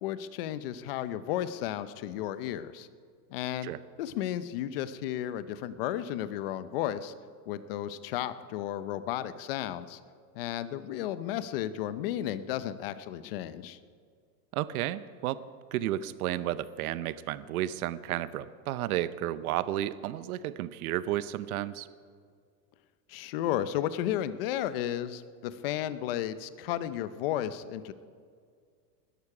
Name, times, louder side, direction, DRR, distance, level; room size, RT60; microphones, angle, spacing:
voice 1, 0.0-2.9 3.3-3.7 4.0-7.1 7.5-10.0 10.4-13.8 23.1-27.9, left 11 dB, 40° left, 14 dB, 0.6 m, -33 dB
voice 2, 14.5-15.4 15.7-21.9, right 13 dB, 65° right, 16 dB, 0.8 m, -32 dB
20.0 x 13.5 x 4.9 m, 2.1 s
supercardioid pair, 175°, 47 cm